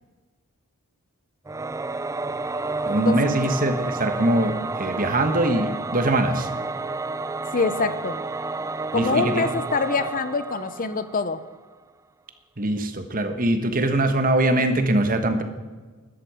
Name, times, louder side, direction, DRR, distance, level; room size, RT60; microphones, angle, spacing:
Singing / Musical instrument, 1.5-11.5, right 3 dB, 15° right, 0.3 m, -30 dB
voice 1, 2.8-6.5 8.9-9.4 12.6-15.4, right 1 dB, 40° right, 7 dB, 1.4 m, -22 dB
voice 2, 7.5-8.2 8.9-11.4, left 4 dB, 40° left, 13 dB, 0.6 m, -25 dB
14.0 x 11.0 x 5.0 m, 1.3 s
head